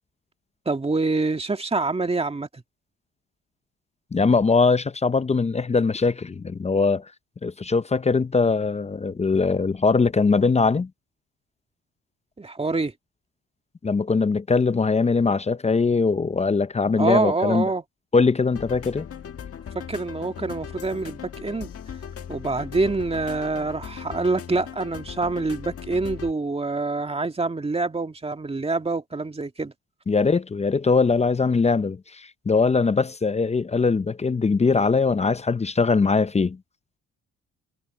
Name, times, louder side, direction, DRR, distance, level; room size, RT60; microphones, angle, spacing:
voice 1, 0.7-2.6 12.4-12.9 17.0-17.8 19.9-21.7 22.3-29.7, right 3 dB, 20° right, 2.1 m, -26 dB
voice 2, 4.1-7.1 7.4-10.9 13.8-17.7 18.1-19.1 30.1-36.6, left 4 dB, 20° left, 0.6 m, -21 dB
sound 1, 18.5-26.3, left 8 dB, 50° left, 1.7 m, -38 dB
cardioid pair, 90°, 30 cm